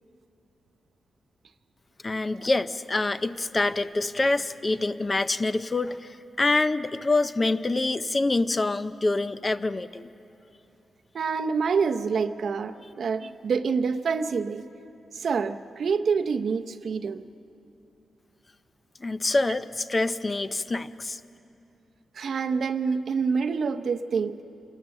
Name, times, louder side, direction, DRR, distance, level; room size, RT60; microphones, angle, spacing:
voice 1, 2.0-6.1 6.4-10.1 19.0-21.2, left 2 dB, 25° left, 13 dB, 0.5 m, -26 dB
voice 2, 11.1-14.7 15.1-17.3 22.1-24.4, right 5 dB, 60° right, 9 dB, 0.7 m, -27 dB
27.5 x 13.0 x 7.7 m, 2.8 s
wide cardioid pair, 130°, 0 cm